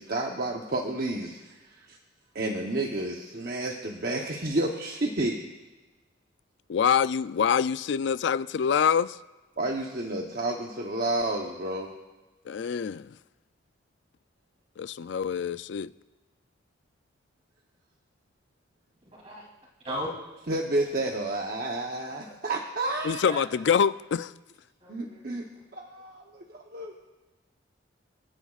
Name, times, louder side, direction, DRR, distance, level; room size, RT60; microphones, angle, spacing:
voice 1, 0.0-2.0 2.3-5.4 9.6-11.9 20.5-23.2 24.9-25.5 25.7-26.9, right 2 dB, 50° right, 0.9 m, -30 dB
voice 2, 6.7-9.2 12.5-13.2 14.8-15.9 23.0-24.3, left 7 dB, 65° left, 0.3 m, -25 dB
voice 3, 19.0-19.5 19.8-20.1 22.1-22.3 23.2-23.4 24.8-25.5, equal, 30° right, 3.1 m, -37 dB
28.5 x 9.9 x 2.4 m
head